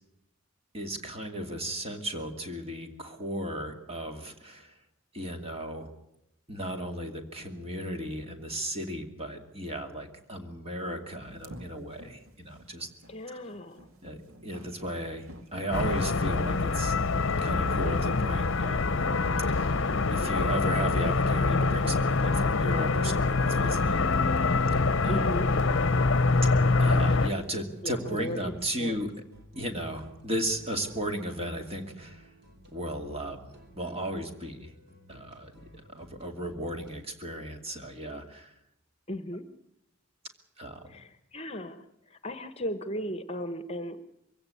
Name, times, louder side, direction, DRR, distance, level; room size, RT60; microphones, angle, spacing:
voice 1, 0.7-4.7 5.1-5.9 6.5-12.9 13.3-13.4 14.0-15.3 15.5-16.9 17.4-19.0 19.5-24.1 25.0-25.3 26.8-29.1 29.6-32.3 32.7-34.7 35.1-35.5 35.9-38.5 40.6-41.0, right 1 dB, 30° right, 4 dB, 2.5 m, -35 dB
sound 1, 11.2-27.5, equal, 80° right, 2.2 m, -49 dB
voice 2, 13.1-13.9 22.9-23.2 25.1-25.5 27.8-29.0 39.1-39.4 40.8-44.0, equal, 30° left, 10 dB, 1.2 m, -36 dB
sound 2, 15.7-27.3, left 3 dB, 60° left, 0.8 m, -25 dB
sound 3, 22.9-37.0, equal, 50° right, 3.3 m, -55 dB
23.0 x 16.5 x 8.4 m, 0.81 s
head